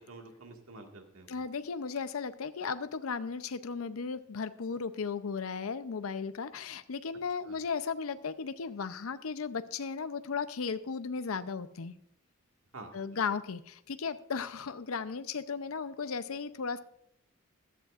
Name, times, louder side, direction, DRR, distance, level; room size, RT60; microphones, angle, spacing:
voice 1, 0.1-1.5 7.4-7.6 12.7-13.2, right 2 dB, 80° right, 3 dB, 1.9 m, -49 dB
voice 2, 1.3-11.9 12.9-16.8, left 5 dB, 80° left, 12 dB, 0.6 m, -35 dB
16.0 x 11.5 x 2.5 m, 0.74 s
head